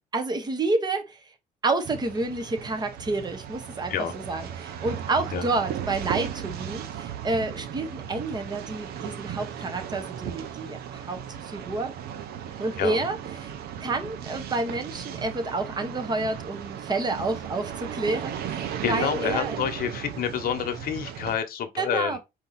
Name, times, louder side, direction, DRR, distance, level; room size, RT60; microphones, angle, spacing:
voice 1, 0.1-1.2 1.6-11.9 12.6-13.5 13.8-19.6 21.8-22.2, right 2 dB, 25° right, 1.0 m, -29 dB
sound 1, 1.9-21.4, right 9 dB, 70° right, 0.8 m, -36 dB
voice 2, 18.8-22.2, left 9 dB, 60° left, 1.0 m, -28 dB
4.5 x 2.9 x 4.0 m
cardioid pair, 110°, 17 cm